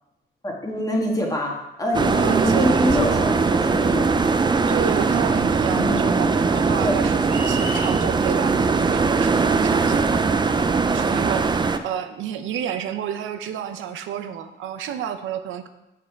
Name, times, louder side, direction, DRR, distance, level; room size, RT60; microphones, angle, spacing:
voice 1, 0.4-4.1 5.7-6.3 6.8-6.9, equal, 20° left, 0 dB, 1.6 m, -25 dB
sound 1, 1.9-11.8, right 4 dB, 20° right, 0.4 m, -20 dB
voice 2, 2.2-3.1 4.7-15.7, right 9 dB, 80° right, 9 dB, 0.6 m, -31 dB
sound 2, 7.3-8.0, right 1 dB, 55° right, 1.7 m, -32 dB
7.5 x 4.2 x 4.5 m, 0.94 s
cardioid pair, 90°, 20 cm